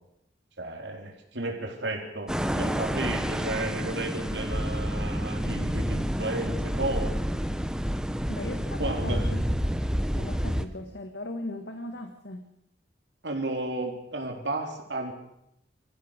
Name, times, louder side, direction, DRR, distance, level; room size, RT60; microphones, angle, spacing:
voice 1, 0.6-7.4 8.8-9.3 13.2-15.1, right 2 dB, 90° right, 2 dB, 4.0 m, -33 dB
sound 1, 2.3-10.6, equal, 5° right, 1.0 m, -29 dB
voice 2, 8.3-9.4 10.1-12.5, left 1 dB, 80° left, 6 dB, 1.7 m, -38 dB
25.5 x 15.0 x 6.7 m, 0.79 s
head